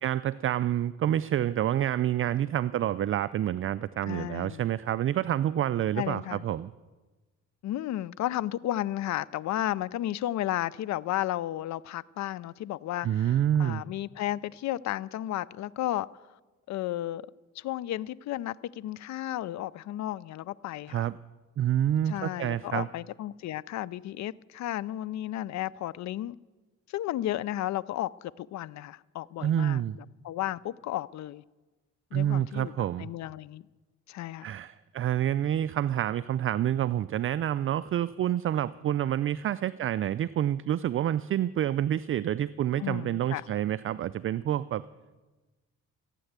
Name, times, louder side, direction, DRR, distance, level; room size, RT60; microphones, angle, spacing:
voice 1, 0.0-6.7 13.0-13.8 20.9-21.2 21.6-22.9 29.4-30.0 32.1-33.1 34.4-44.8, right 11 dB, 45° right, 0.4 m, -28 dB
voice 2, 4.1-4.7 6.0-6.4 7.6-16.1 16.7-17.2 17.6-21.1 22.1-26.4 26.9-31.4 32.1-32.7 33.0-33.6 34.1-34.5 42.8-43.4, left 14 dB, 65° left, 0.5 m, -33 dB
15.0 x 9.2 x 8.0 m
cardioid pair, 90°, 30 cm